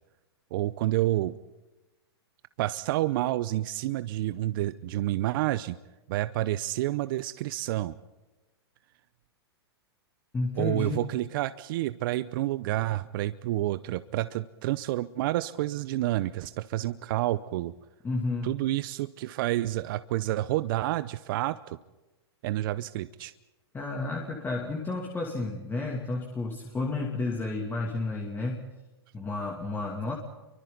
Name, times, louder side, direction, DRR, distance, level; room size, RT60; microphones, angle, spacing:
voice 1, 0.5-1.4 2.6-5.8 6.1-8.0 10.6-17.7 18.4-21.8 22.4-23.3, right 15 dB, 55° right, 14 dB, 0.7 m, -29 dB
voice 2, 10.3-11.1 18.0-18.6 23.7-28.7 29.1-30.2, left 3 dB, 15° left, 0 dB, 2.7 m, -31 dB
29.5 x 24.0 x 4.1 m, 1.1 s
hypercardioid pair, 115°, 14 cm